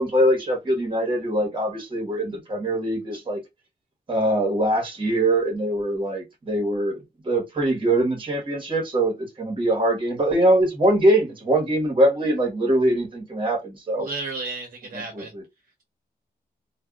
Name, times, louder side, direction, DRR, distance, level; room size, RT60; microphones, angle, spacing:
voice 1, 0.0-3.4 4.1-7.0 7.2-14.1 14.9-15.4, right 1 dB, 30° right, 1.2 m, -22 dB
voice 2, 14.0-15.3, right 3 dB, 60° right, 0.8 m, -33 dB
2.6 x 2.2 x 3.5 m
wide cardioid pair, 180°, 16 cm